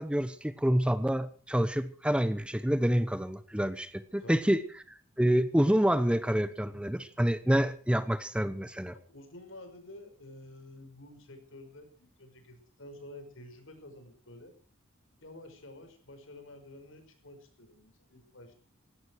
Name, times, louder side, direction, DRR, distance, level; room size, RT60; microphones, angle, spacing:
voice 1, 0.0-4.6 5.2-8.9, equal, 5° right, 13 dB, 0.9 m, -27 dB
voice 2, 8.9-14.5 15.2-18.5, left 1 dB, 70° left, 7 dB, 5.3 m, -50 dB
18.0 x 16.5 x 4.7 m, 0.42 s
head